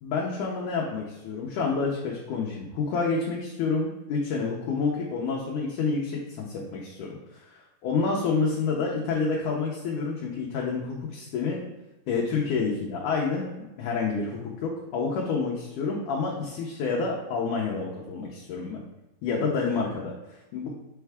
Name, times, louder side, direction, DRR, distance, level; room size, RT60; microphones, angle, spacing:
voice 1, 0.0-11.6 12.1-18.8 19.2-20.7, left 4 dB, 75° left, -2 dB, 2.0 m, -29 dB
7.3 x 4.6 x 3.5 m, 1.0 s
omnidirectional pair, 4.4 m